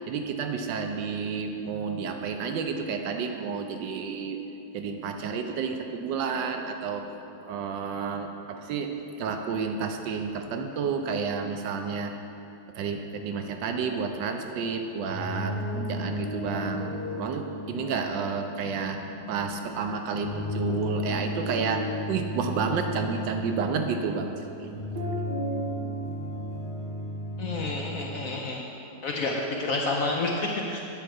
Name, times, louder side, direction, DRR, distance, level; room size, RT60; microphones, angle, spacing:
voice 1, 0.1-4.4 4.7-7.1 7.4-8.9 9.2-12.1 12.7-24.7, right 5 dB, 80° right, 5 dB, 1.3 m, -31 dB
sound 1, 14.9-28.3, equal, 60° right, 1.7 m, -34 dB
voice 2, 27.4-28.6 29.0-30.8, left 2 dB, 65° left, 0 dB, 0.8 m, -29 dB
8.8 x 4.6 x 6.4 m, 2.8 s
omnidirectional pair, 2.0 m